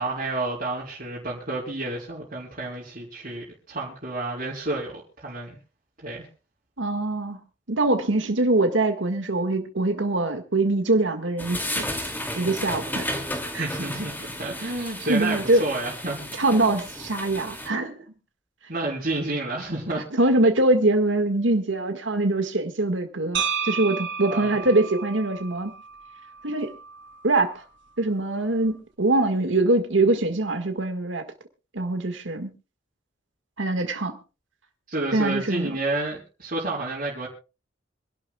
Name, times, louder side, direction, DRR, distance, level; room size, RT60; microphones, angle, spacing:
voice 1, 0.0-5.6 6.0-6.3 13.6-14.1 14.4-16.2 16.5-16.9 18.7-20.0 23.9-24.7 34.9-37.3, right 2 dB, 45° right, 4.1 m, -30 dB
voice 2, 6.8-7.4 7.7-11.9 12.4-13.1 13.5-13.7 15.1-15.6 16.4-18.0 20.2-25.7 26.4-26.7 27.2-27.6 28.0-31.2 31.7-32.5 33.6-34.2 35.1-35.8, right 2 dB, 90° right, 1.8 m, -23 dB
sound 1, 11.4-17.7, left 1 dB, 10° left, 2.6 m, -33 dB
sound 2, 23.3-27.4, right 6 dB, 75° right, 3.0 m, -32 dB
26.0 x 11.5 x 2.4 m
head